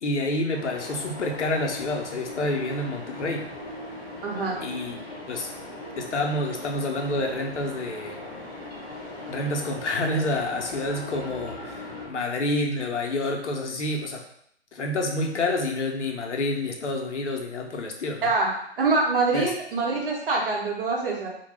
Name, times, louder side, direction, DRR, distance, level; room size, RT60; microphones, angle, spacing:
voice 1, 0.0-3.5 4.6-5.5 6.0-8.2 9.3-14.2 14.7-18.3 19.3-19.5, left 2 dB, 85° left, 1 dB, 0.7 m, -28 dB
sound 1, 0.5-12.1, left 1 dB, 15° left, 0.8 m, -39 dB
voice 2, 4.2-4.6 18.2-18.5 18.8-21.3, right 3 dB, 50° right, -2 dB, 0.8 m, -24 dB
2.2 x 2.1 x 3.2 m, 0.69 s
figure-of-eight pair, 140°, 34 cm